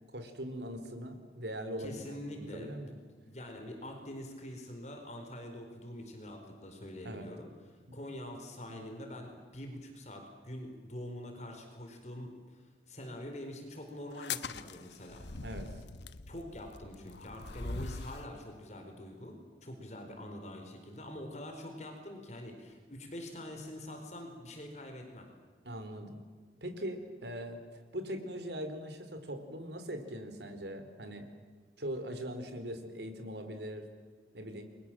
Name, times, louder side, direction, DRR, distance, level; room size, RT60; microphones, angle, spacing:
voice 1, 0.1-3.0 7.0-7.3 7.9-8.0 15.4-15.7 25.6-26.2 26.6-27.6 27.9-31.3 31.8-33.9 34.3-34.6, equal, 75° right, 7 dB, 4.3 m, -41 dB
voice 2, 1.8-3.0 3.2-7.5 7.9-15.3 16.3-25.3, left 1 dB, 40° left, 4 dB, 4.5 m, -45 dB
sound 1, 14.1-18.3, left 4 dB, 80° left, 1.1 m, -42 dB
30.0 x 23.0 x 7.7 m, 1.5 s
head